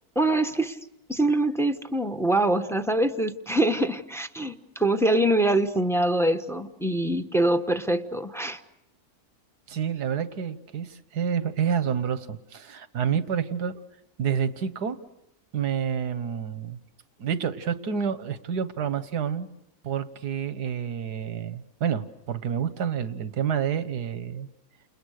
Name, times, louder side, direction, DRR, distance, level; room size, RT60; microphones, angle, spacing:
voice 1, 0.1-0.8 1.1-8.6, right 1 dB, ahead, 9 dB, 1.0 m, -24 dB
voice 2, 9.7-13.7 14.2-15.0 15.5-16.8 17.2-19.5 19.8-24.5, right 7 dB, 90° right, 12 dB, 1.9 m, -28 dB
29.5 x 28.5 x 6.6 m, 0.84 s
omnidirectional pair, 1.7 m